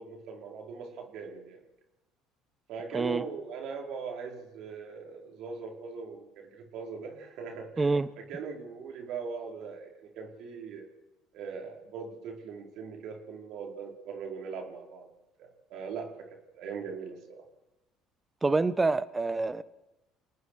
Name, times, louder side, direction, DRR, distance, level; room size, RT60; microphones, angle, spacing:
voice 1, 0.0-1.6 2.7-8.0 8.3-10.8 11.3-15.1 15.4-17.4, right 5 dB, 65° right, 4.7 m, -40 dB
voice 2, 2.9-3.2 7.8-8.1 18.4-19.6, right 3 dB, 20° right, 1.1 m, -26 dB
29.5 x 19.0 x 4.9 m
hypercardioid pair, 75°, 0 cm